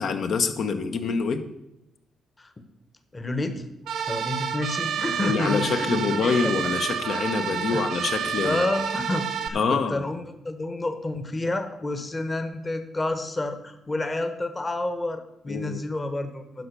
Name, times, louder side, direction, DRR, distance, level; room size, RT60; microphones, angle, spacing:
voice 1, 0.0-1.4 5.2-8.7 9.5-10.0 15.5-15.8, left 5 dB, 60° left, 7 dB, 1.1 m, -26 dB
voice 2, 3.1-3.6 4.1-6.6 7.7-7.8 8.4-16.7, left 2 dB, 25° left, 9 dB, 1.2 m, -29 dB
sound 1, 3.9-9.5, right 7 dB, 75° right, 1.0 m, -29 dB
10.5 x 5.7 x 6.8 m, 0.90 s
cardioid pair, 90°, 0 cm